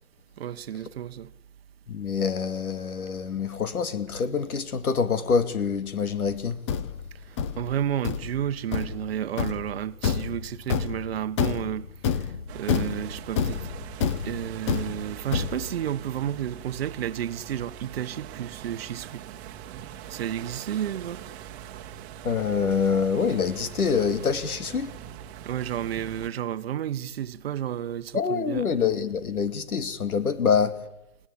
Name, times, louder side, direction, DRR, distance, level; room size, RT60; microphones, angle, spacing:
voice 1, 0.4-1.3 7.3-12.3 12.5-13.6 14.2-19.2 20.1-21.2 25.4-28.7, right 10 dB, 45° right, 1.1 m, -31 dB
voice 2, 1.9-6.6 22.2-24.9 28.1-30.8, left 6 dB, 80° left, 2.6 m, -26 dB
Thump thud, 6.3-15.9, left 7 dB, 20° left, 0.8 m, -29 dB
sound 1, 12.5-26.3, right 10 dB, 20° right, 1.4 m, -42 dB
29.5 x 17.5 x 8.6 m
hypercardioid pair, 155°, 43 cm